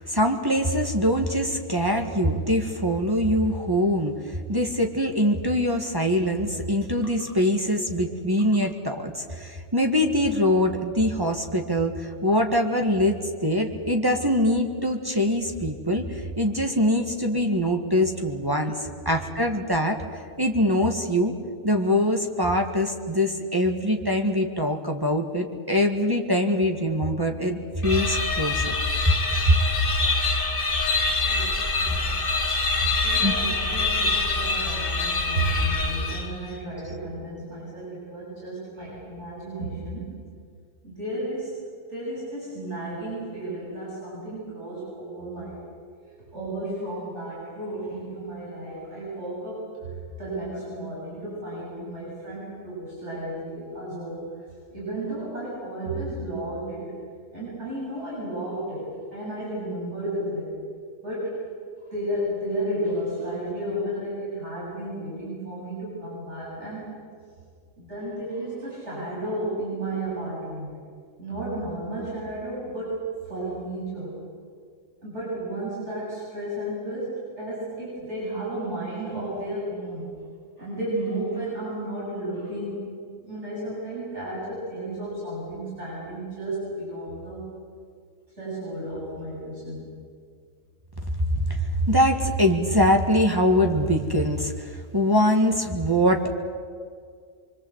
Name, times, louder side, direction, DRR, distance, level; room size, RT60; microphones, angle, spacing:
voice 1, 0.0-20.0 20.4-21.3 21.6-28.7 29.1-29.2 29.5-29.6 33.2-33.4 91.4-96.3, equal, 15° right, 2 dB, 1.8 m, -23 dB
sound 1, 27.8-36.5, left 3 dB, 45° left, 2.1 m, -25 dB
voice 2, 31.3-32.1 33.0-40.2 40.8-41.5 41.9-45.6 46.2-57.0 57.3-60.5 61.0-61.4 61.8-66.9 67.8-70.7 71.2-74.1 75.0-80.1 80.6-82.9 83.2-87.5 88.3-89.9, right 1 dB, 60° right, -7 dB, 8.6 m, -33 dB
25.0 x 24.0 x 8.1 m, 2.1 s
omnidirectional pair, 1.3 m